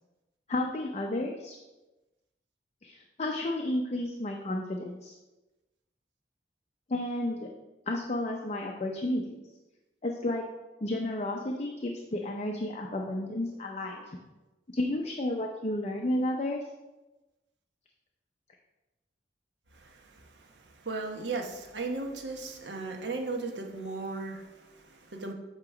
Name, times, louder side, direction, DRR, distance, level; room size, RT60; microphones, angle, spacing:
voice 1, 0.5-1.6 2.8-5.1 6.9-7.5 7.9-9.4 10.0-10.4 10.8-14.2 14.7-16.6, left 1 dB, 40° left, 1 dB, 0.6 m, -32 dB
voice 2, 19.7-25.3, right 3 dB, 80° right, 2 dB, 1.0 m, -37 dB
8.7 x 3.0 x 5.8 m, 1.1 s
head